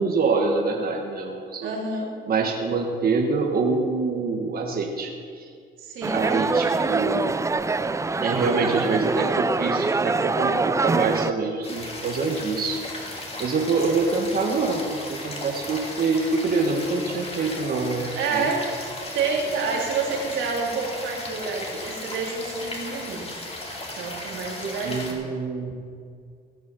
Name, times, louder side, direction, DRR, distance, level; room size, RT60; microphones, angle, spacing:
voice 1, 0.0-1.7 2.3-5.5 6.1-7.2 8.2-12.8 13.4-18.5 24.8-25.9, right 4 dB, 50° right, 1 dB, 1.4 m, -25 dB
voice 2, 1.6-2.1 5.8-6.3 18.2-18.6 19.1-23.4 23.9-25.2, right 4 dB, 90° right, -2 dB, 2.7 m, -28 dB
sound 1, 6.0-11.3, right 3 dB, 15° right, 0.4 m, -24 dB
sound 2, 11.6-25.1, left 2 dB, 30° left, 2.8 m, -36 dB
17.0 x 6.6 x 6.9 m, 2.2 s
cardioid pair, 90°, 20 cm